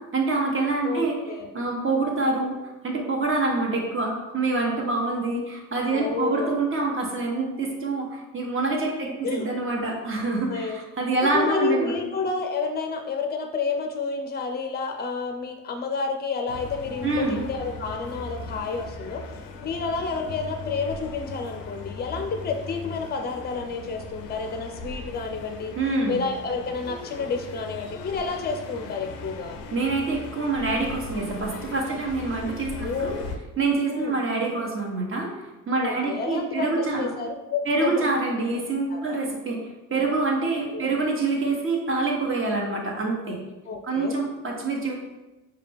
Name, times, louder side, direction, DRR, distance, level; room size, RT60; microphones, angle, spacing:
voice 1, 0.0-1.2 1.5-2.6 2.8-11.9 17.0-17.4 25.8-26.2 29.7-33.2 33.6-37.1 37.7-43.4 43.8-44.9, right 3 dB, 30° right, -1 dB, 1.2 m, -26 dB
voice 2, 0.8-1.5 5.9-6.6 9.0-9.5 10.5-10.8 11.3-19.2 19.6-25.7 26.1-29.6 32.7-33.3 33.9-34.2 35.8-38.1 38.9-39.2 40.7-40.9 43.7-44.2, left 4 dB, 25° left, 5 dB, 0.6 m, -30 dB
sound 1, 16.5-33.4, left 3 dB, 85° left, 0.5 m, -39 dB
4.8 x 2.3 x 3.4 m, 1.1 s
hypercardioid pair, 55°, 39 cm